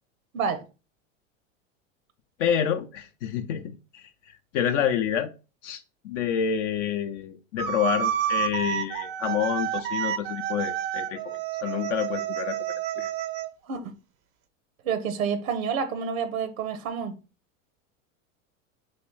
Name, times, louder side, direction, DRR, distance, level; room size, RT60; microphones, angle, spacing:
voice 1, 0.3-0.6 13.7-13.9 14.8-17.2, right 6 dB, 85° right, 0.7 m, -29 dB
voice 2, 2.4-4.0 4.5-5.3 5.6-12.6 13.0-13.1, left 8 dB, 65° left, 0.6 m, -28 dB
sound 1, 7.6-13.5, right 10 dB, 40° right, 0.4 m, -29 dB
3.1 x 2.8 x 4.4 m
hypercardioid pair, 100°, 40 cm